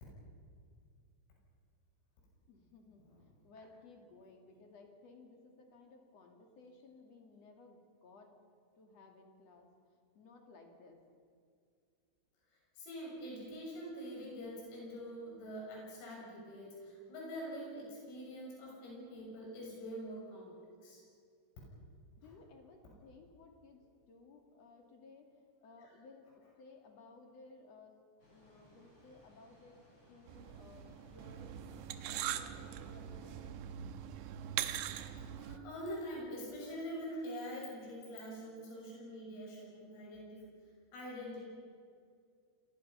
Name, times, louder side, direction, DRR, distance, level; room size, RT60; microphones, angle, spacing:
voice 1, 2.5-8.3 8.7-11.0 22.2-25.3 25.6-28.0 28.3-31.5 32.0-33.5, left 3 dB, 45° left, 3 dB, 2.4 m, -58 dB
voice 2, 12.8-21.0 22.2-22.3 35.4-40.4 40.9-41.5, equal, 80° left, -3 dB, 9.4 m, -45 dB
sound 1, 28.2-33.5, equal, 20° left, 6.0 m, -64 dB
sound 2, 30.3-35.6, right 10 dB, 75° right, 2.9 m, -42 dB
28.5 x 24.0 x 5.7 m, 2.2 s
omnidirectional pair, 6.0 m